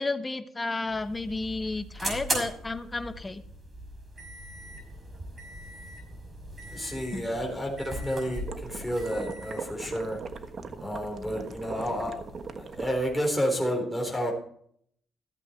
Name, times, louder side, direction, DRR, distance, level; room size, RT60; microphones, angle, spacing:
voice 1, 0.0-3.4 7.1-7.3, left 3 dB, 20° left, 10 dB, 1.2 m, -32 dB
sound 1, 0.8-13.2, right 1 dB, 30° right, 5.6 m, -40 dB
voice 2, 6.6-10.2 10.8-12.1 12.5-14.3, equal, ahead, 1 dB, 4.1 m, -30 dB
sound 2, 8.5-12.9, right 5 dB, 45° right, 1.3 m, -40 dB
15.0 x 8.3 x 4.6 m, 0.63 s
cardioid pair, 90°, 0 cm